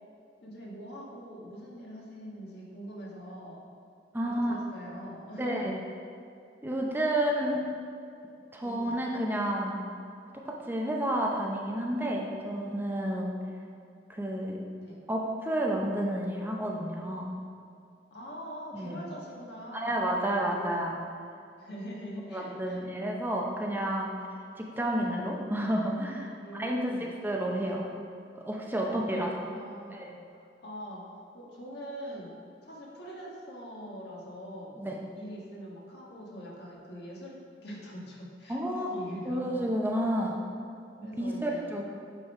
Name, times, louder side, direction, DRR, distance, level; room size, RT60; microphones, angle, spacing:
voice 1, 0.4-3.6 4.2-5.8 8.6-9.0 14.8-15.0 18.1-20.8 21.6-22.9 26.4-27.1 28.8-30.0 30.3-32.3 32.6-34.8 35.1-38.6 38.9-39.7 40.2-40.3 41.0-41.7, equal, 65° left, -4 dB, 1.6 m, -43 dB
voice 2, 4.1-4.5 5.4-5.7 6.6-7.6 8.5-9.8 10.5-13.4 14.1-14.6 15.1-17.3 18.7-19.0 19.7-21.0 22.3-24.2 24.6-26.3 26.6-27.9 28.5-29.5 29.9-30.2 34.8-35.0 38.5-38.9 39.3-40.4 41.2-41.8, right 1 dB, 10° right, -1 dB, 0.6 m, -30 dB
8.7 x 4.1 x 4.7 m, 2.5 s
head